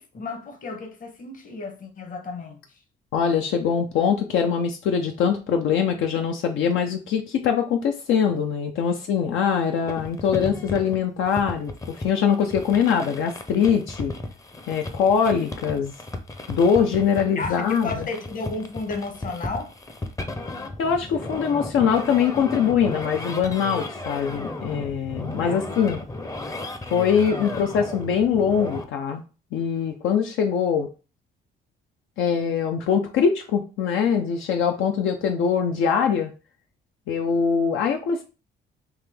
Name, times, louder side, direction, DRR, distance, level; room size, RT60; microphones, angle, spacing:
voice 1, 0.0-2.6 17.4-19.7 25.4-25.6, left 3 dB, 45° left, 1.0 m, -33 dB
voice 2, 3.1-14.1 14.7-15.9 16.5-18.1 20.8-26.0 26.9-29.2 29.5-30.9 32.2-36.3 37.1-38.2, left 7 dB, 80° left, 0.6 m, -23 dB
sound 1, 9.9-28.8, left 2 dB, 15° left, 0.6 m, -35 dB
3.5 x 2.8 x 3.4 m
cardioid pair, 90°, 20 cm